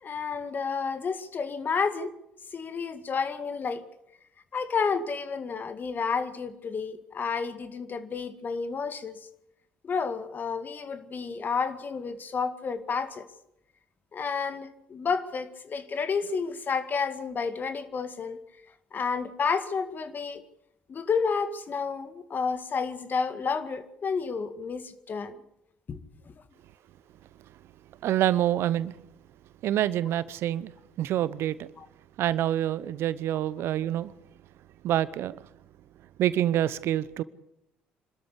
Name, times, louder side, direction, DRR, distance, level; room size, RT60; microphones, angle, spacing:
voice 1, 0.0-2.1 2.5-3.8 4.5-9.2 9.8-13.3 14.1-18.4 18.9-20.4 20.9-25.4 25.9-26.0 31.8-31.9, left 5 dB, 40° left, 2.0 m, -30 dB
voice 2, 28.0-28.9 29.6-30.7 31.0-31.7 32.2-34.1 34.8-35.4 36.2-37.2, right 12 dB, 60° right, 0.8 m, -26 dB
25.5 x 13.0 x 8.4 m
hypercardioid pair, 55°, 5 cm